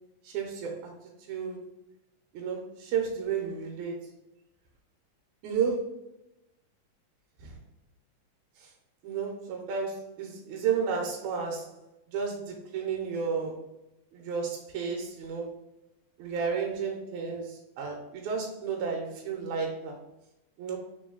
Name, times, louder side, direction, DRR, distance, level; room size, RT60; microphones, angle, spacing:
voice 1, 0.2-1.0 1.3-1.6 2.3-4.0 5.4-6.0 7.4-7.6 8.6-8.7 9.0-11.7 12.1-13.6 14.1-15.5 16.2-20.0 20.6-20.8, right 6 dB, 85° right, 1 dB, 2.0 m, -32 dB
4.4 x 3.6 x 2.2 m, 0.89 s
omnidirectional pair, 3.3 m